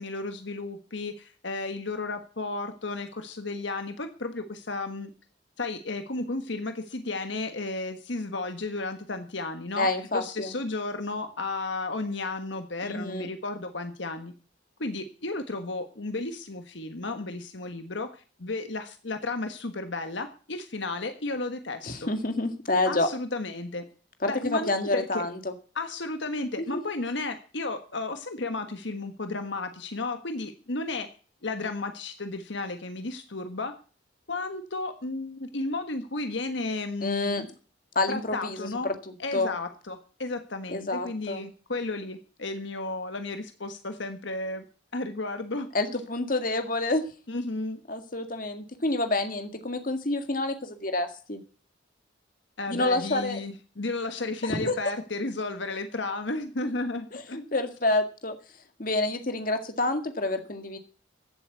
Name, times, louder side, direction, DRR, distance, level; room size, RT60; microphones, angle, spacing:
voice 1, 0.0-5.1 5.6-14.3 14.8-22.1 22.8-23.8 24.3-25.3 25.7-31.1 31.4-33.7 34.3-37.5 38.1-38.9 39.2-44.6 44.9-45.7 47.3-47.8 52.6-57.4, left 2 dB, 70° left, 8 dB, 1.4 m, -33 dB
voice 2, 9.8-10.5 12.8-13.3 21.8-23.1 24.2-25.4 26.7-26.8 37.0-37.4 38.0-38.6 38.8-39.0 39.3-39.5 40.7-41.4 45.7-47.0 47.9-51.4 52.7-53.4 54.4-54.7 57.1-58.4 58.8-60.8, left 2 dB, 45° left, 7 dB, 1.9 m, -28 dB
15.0 x 8.0 x 8.2 m, 0.38 s
head